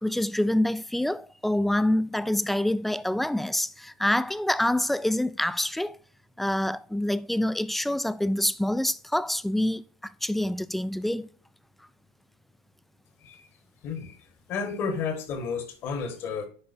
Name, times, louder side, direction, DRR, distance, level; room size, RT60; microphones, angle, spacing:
voice 1, 0.0-6.0 6.4-11.3, left 1 dB, 5° left, 0.3 m, -26 dB
voice 2, 13.8-14.2 14.5-16.5, left 5 dB, 50° left, 1.4 m, -32 dB
10.0 x 4.6 x 2.6 m
supercardioid pair, 110°, 5 cm